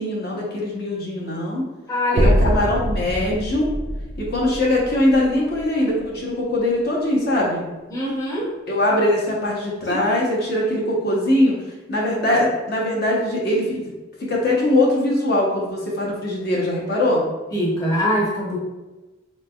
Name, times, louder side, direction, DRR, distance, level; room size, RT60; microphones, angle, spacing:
voice 1, 0.0-1.6 2.1-3.7 4.2-7.6 8.7-11.5 11.9-13.8 14.3-17.2, left 1 dB, 50° left, -4 dB, 0.8 m, -21 dB
voice 2, 1.9-2.3 7.9-8.5 9.9-10.0 17.5-18.6, left 1 dB, 20° left, -6 dB, 0.8 m, -23 dB
sound 1, 2.2-6.3, equal, 40° right, 0.4 m, -24 dB
4.0 x 3.2 x 2.3 m, 1.1 s
head